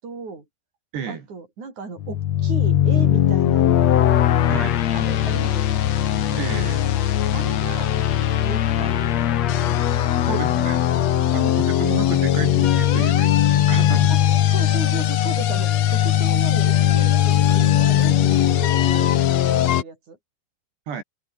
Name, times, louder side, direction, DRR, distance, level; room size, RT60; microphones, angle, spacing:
voice 1, 0.0-0.5 1.1-3.8 4.9-5.8 6.3-6.4 7.3-7.9 8.4-9.4 14.1-20.2, right 4 dB, 45° right, 8.0 m, -36 dB
voice 2, 0.9-1.3 4.5-4.8 6.4-6.9 10.2-10.8 11.3-14.2 20.9-21.0, right 7 dB, 80° right, 6.1 m, -31 dB
sound 1, 2.0-19.8, left 11 dB, 65° left, 1.7 m, -19 dB
open air
omnidirectional pair, 4.8 m